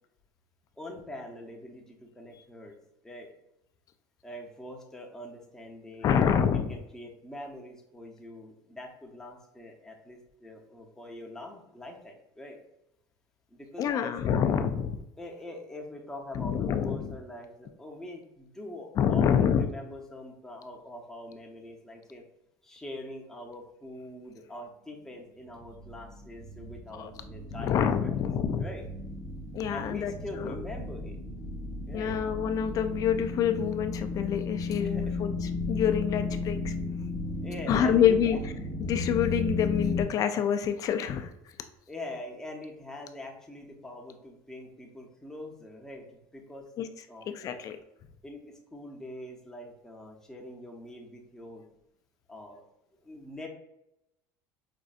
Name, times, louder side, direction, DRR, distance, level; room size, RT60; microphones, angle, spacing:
voice 1, 0.8-2.7 3.0-3.3 4.2-6.2 6.5-12.6 13.5-14.1 15.2-22.2 22.6-28.2 28.6-28.8 29.7-31.2 31.9-32.1 34.8-35.2 37.4-38.5 41.9-46.7 47.1-47.7 48.2-51.6 52.3-52.6 53.0-53.5, left 1 dB, 5° left, 0 dB, 0.7 m, -43 dB
voice 2, 6.0-6.7 13.8-15.0 16.3-17.2 19.0-19.7 26.9-27.1 27.5-28.6 29.5-30.1 30.4-30.5 31.9-35.3 35.7-36.7 37.7-38.4 38.9-41.3 46.8-46.9 47.3-47.8, left 8 dB, 40° left, 8 dB, 0.4 m, -27 dB
sound 1, 25.5-40.0, left 3 dB, 30° right, 1.0 m, -35 dB
5.1 x 2.5 x 2.4 m, 0.85 s
supercardioid pair, 120°, 9 cm